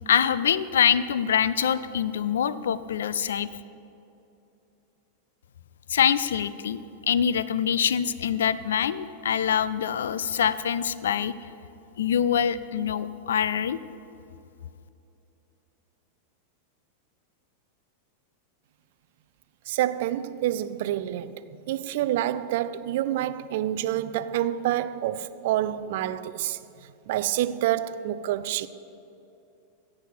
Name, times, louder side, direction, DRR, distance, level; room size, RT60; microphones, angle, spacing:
voice 1, 0.1-3.5 5.9-6.8 7.1-11.3 12.0-13.8, left 8 dB, 65° left, 0.4 m, -24 dB
voice 2, 19.7-21.4 21.7-26.6 27.1-28.7, right 12 dB, 50° right, 0.4 m, -27 dB
14.5 x 8.6 x 4.5 m
figure-of-eight pair, 90°, 0 cm